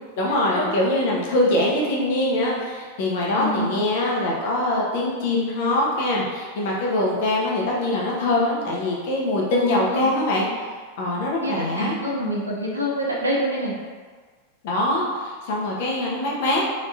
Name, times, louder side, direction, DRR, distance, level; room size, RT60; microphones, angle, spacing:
voice 1, 0.2-10.7 11.0-12.0 14.6-16.6, left 1 dB, 50° left, -3 dB, 0.8 m, -23 dB
voice 2, 3.3-3.7 9.5-10.1 11.4-13.7, equal, 80° right, -4 dB, 0.8 m, -26 dB
3.5 x 3.0 x 2.6 m, 1.5 s
figure-of-eight pair, 90°, 0 cm